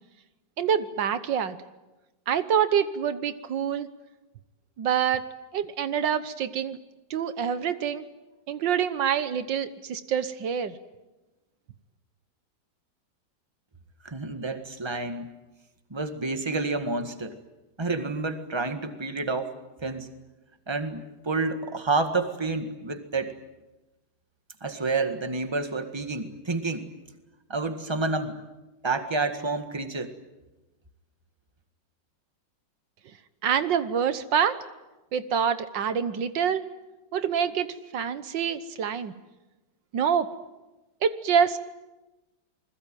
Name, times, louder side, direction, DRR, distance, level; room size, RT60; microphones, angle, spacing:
voice 1, 0.6-1.6 2.3-3.9 4.8-5.3 5.5-6.8 7.1-8.1 8.5-10.7 33.4-34.6 35.1-36.6 37.1-39.1 39.9-40.3 41.0-41.6, right 8 dB, 80° right, 12 dB, 1.8 m, -26 dB
voice 2, 14.0-15.3 15.9-17.4 17.8-19.5 19.8-20.1 20.7-23.3 24.6-26.9 27.5-28.4 28.8-30.1, right 3 dB, 15° right, 8 dB, 1.8 m, -29 dB
28.0 x 21.0 x 9.2 m, 1.1 s
omnidirectional pair, 2.0 m